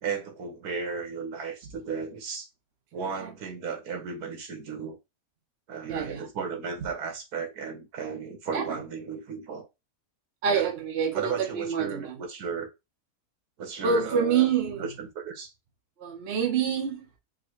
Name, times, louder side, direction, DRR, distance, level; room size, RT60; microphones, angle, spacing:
voice 1, 0.0-2.5 2.9-5.0 5.7-9.7 10.5-10.7 11.1-12.7 13.6-14.5 14.8-15.5, right 5 dB, 75° right, 1.7 m, -34 dB
voice 2, 5.9-6.3 8.5-8.8 10.4-12.2 13.8-14.8 16.0-17.2, right 6 dB, 50° right, 0.9 m, -27 dB
4.8 x 2.1 x 4.5 m
omnidirectional pair, 1.6 m